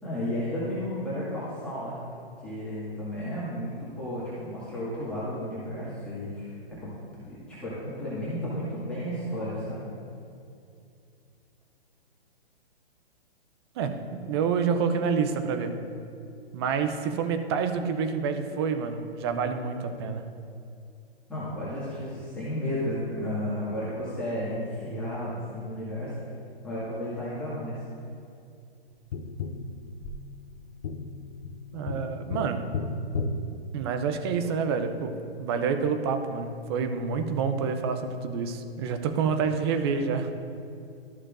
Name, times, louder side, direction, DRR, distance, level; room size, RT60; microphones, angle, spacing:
voice 1, 0.0-2.0 2.4-6.5 6.8-9.8 21.3-26.1 26.6-27.8, left 1 dB, 5° left, -12 dB, 2.0 m, -33 dB
voice 2, 13.8-15.9 16.5-20.3 31.7-32.8 33.7-40.3, right 6 dB, 25° right, 8 dB, 0.5 m, -28 dB
Tap, 29.1-34.4 37.0-37.1, left 3 dB, 45° left, 0.6 m, -35 dB
13.5 x 6.4 x 2.5 m, 2.5 s
hypercardioid pair, 140°, 31 cm